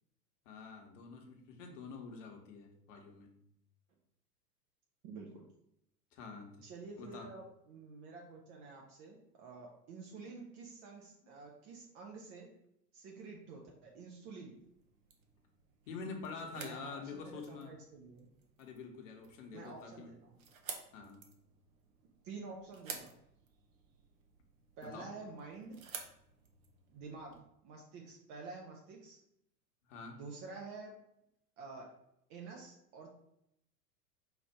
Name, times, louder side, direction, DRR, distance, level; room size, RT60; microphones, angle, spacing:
voice 1, 0.4-3.3 6.1-6.5 7.0-7.3 15.9-17.7 18.6-20.1 20.9-21.2 24.8-25.1 29.9-30.2, left 4 dB, 50° left, 2 dB, 1.1 m, -47 dB
voice 2, 5.0-5.5 6.6-12.5 12.9-14.6 16.6-18.3 19.5-20.3 22.2-23.1 24.8-25.8 26.9-29.2 30.1-30.9 31.6-31.9 32.3-33.1, right 4 dB, 25° right, 0 dB, 0.5 m, -49 dB
sound 1, 14.5-27.4, right 6 dB, 55° right, 0.8 m, -53 dB
4.9 x 2.5 x 4.3 m, 0.78 s
figure-of-eight pair, 90°, 49 cm